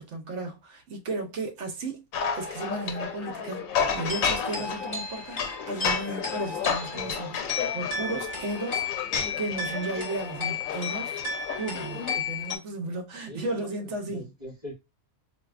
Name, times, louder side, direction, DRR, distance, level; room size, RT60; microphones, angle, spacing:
voice 1, 0.0-2.0 2.3-3.6 3.9-7.4 7.7-9.0 9.4-11.2 11.5-14.3, right 2 dB, 60° right, 1.0 m, -34 dB
sound 1, 2.1-12.2, left 6 dB, 85° left, 1.1 m, -32 dB
sound 2, 3.9-12.6, left 5 dB, 30° left, 1.4 m, -34 dB
voice 2, 13.1-14.7, left 1 dB, 30° right, 2.1 m, -43 dB
3.7 x 2.7 x 2.4 m
omnidirectional pair, 1.4 m